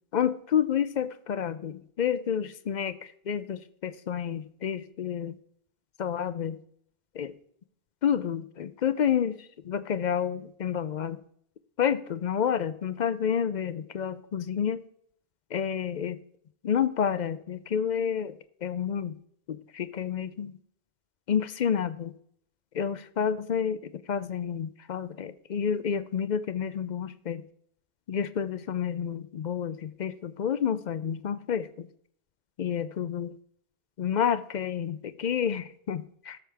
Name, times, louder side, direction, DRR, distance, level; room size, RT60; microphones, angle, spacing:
voice 1, 0.1-5.4 6.0-6.6 7.1-7.3 8.0-11.2 11.8-14.8 15.5-16.2 16.6-18.3 18.6-19.1 19.5-20.5 21.3-22.1 22.7-27.4 28.1-31.9 32.6-33.4 34.0-36.4, left 8 dB, 55° left, 14 dB, 0.6 m, -29 dB
17.0 x 6.9 x 3.4 m, 0.66 s
omnidirectional pair, 1.1 m